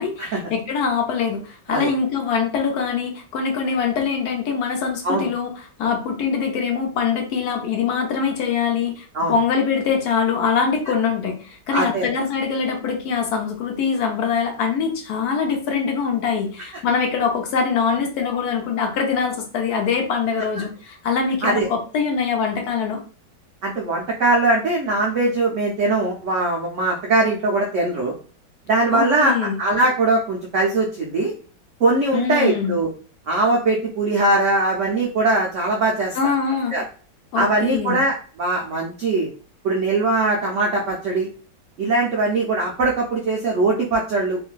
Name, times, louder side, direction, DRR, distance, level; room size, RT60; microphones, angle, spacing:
voice 1, 0.0-5.5 5.8-23.0 28.9-29.6 32.1-32.8 36.1-36.7 37.3-38.0, left 6 dB, 70° left, 3 dB, 1.0 m, -23 dB
voice 2, 11.7-12.1 21.4-21.7 23.6-28.1 28.7-31.3 31.8-32.9 33.3-36.2 36.7-36.8 37.3-39.3 39.6-41.3 41.8-44.4, right 2 dB, 90° right, -1 dB, 0.6 m, -21 dB
2.9 x 2.5 x 2.3 m, 0.40 s
omnidirectional pair, 2.0 m